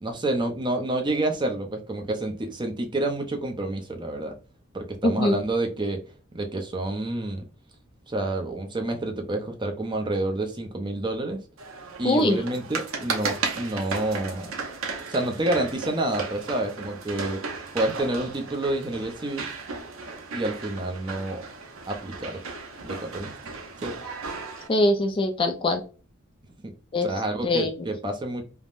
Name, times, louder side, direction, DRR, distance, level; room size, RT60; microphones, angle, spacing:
voice 1, 0.0-4.3 4.7-6.0 6.3-7.4 8.1-11.4 12.0-14.5 15.1-17.4 17.7-19.4 20.3-21.4 21.9-22.4 22.8-23.3 23.8-23.9 27.0-28.4, right 2 dB, 20° right, 4 dB, 0.6 m, -28 dB
voice 2, 5.0-5.4 12.0-12.4 24.7-25.8 26.9-27.1 27.4-27.7, left 1 dB, 25° left, 6 dB, 0.3 m, -22 dB
sound 1, 11.6-24.7, right 4 dB, 75° right, 0.7 m, -35 dB
3.4 x 2.1 x 2.4 m, 0.36 s
head